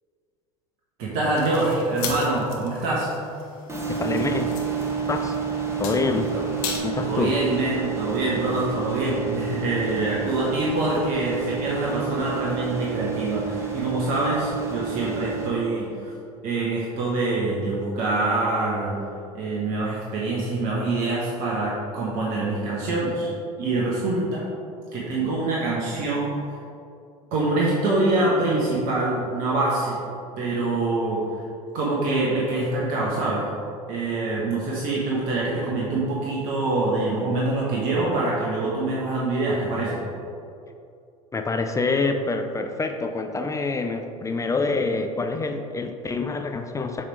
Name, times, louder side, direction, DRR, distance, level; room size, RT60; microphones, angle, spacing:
voice 1, 1.0-3.1 6.3-6.4 7.0-16.1 16.4-18.9 19.3-23.3 23.6-24.4 24.9-26.4 27.3-30.0 30.4-31.2 31.7-33.5 33.9-40.0, right 2 dB, 50° right, -5 dB, 1.3 m, -25 dB
sound 1, 1.3-6.8, left 5 dB, 55° left, 1.1 m, -37 dB
sound 2, 3.7-15.5, right 6 dB, 15° right, 1.4 m, -30 dB
voice 2, 3.9-4.6 5.1-5.4 5.8-6.3 6.8-7.3 41.3-47.0, left 3 dB, 15° left, 6 dB, 0.5 m, -26 dB
7.2 x 3.5 x 4.7 m, 2.5 s
hypercardioid pair, 80°, 19 cm